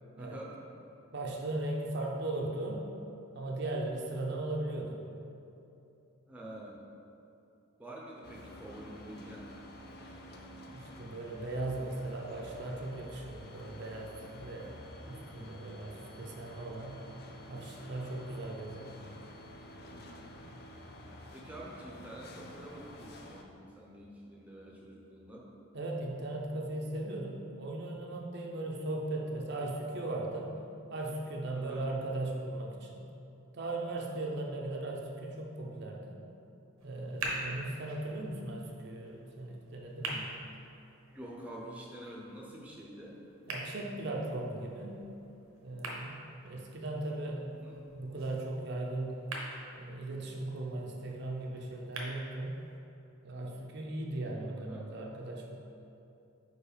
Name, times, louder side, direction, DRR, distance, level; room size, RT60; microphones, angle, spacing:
voice 1, 0.2-0.5 6.3-6.9 7.8-9.5 19.9-20.3 21.3-25.5 31.5-31.9 41.1-43.2 47.5-47.8 54.5-54.9, right 1 dB, 5° right, -4 dB, 0.7 m, -47 dB
voice 2, 1.1-2.8 3.3-5.0 10.7-14.7 15.1-17.0 17.5-19.1 25.7-30.5 30.9-33.0 33.5-36.2 36.8-40.3 43.5-45.0 45.6-47.6 47.9-49.2 49.7-52.6 53.2-55.6, right 2 dB, 50° right, -1 dB, 0.6 m, -38 dB
sound 1, 8.2-23.4, left 1 dB, 45° left, 0.5 m, -50 dB
sound 2, 36.8-52.8, right 2 dB, 80° right, 1.0 m, -46 dB
4.7 x 4.7 x 5.0 m, 2.8 s
head